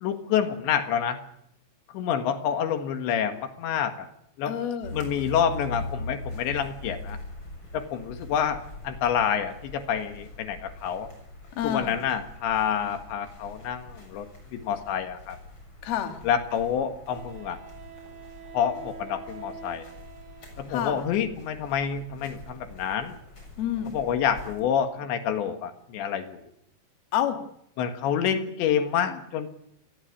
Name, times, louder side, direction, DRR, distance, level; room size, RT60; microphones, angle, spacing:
voice 1, 0.0-1.2 1.9-4.1 4.4-4.6 4.9-7.2 7.7-11.1 11.6-14.3 14.5-15.4 16.2-17.6 18.5-19.9 20.6-23.2 23.9-26.5 27.8-29.5, left 8 dB, 85° left, 8 dB, 4.0 m, -28 dB
voice 2, 4.5-5.0 11.6-11.9 15.8-16.2 20.7-21.0 23.6-24.0 27.1-27.4, left 10 dB, 65° left, 7 dB, 3.7 m, -28 dB
sound 1, 4.8-24.6, left 2 dB, 25° left, 7.6 m, -43 dB
Wind instrument woodwind instrument, 15.8-15.9 17.1-21.1, right 5 dB, 30° right, 3.0 m, -45 dB
27.5 x 20.5 x 8.5 m, 0.76 s
omnidirectional pair, 5.1 m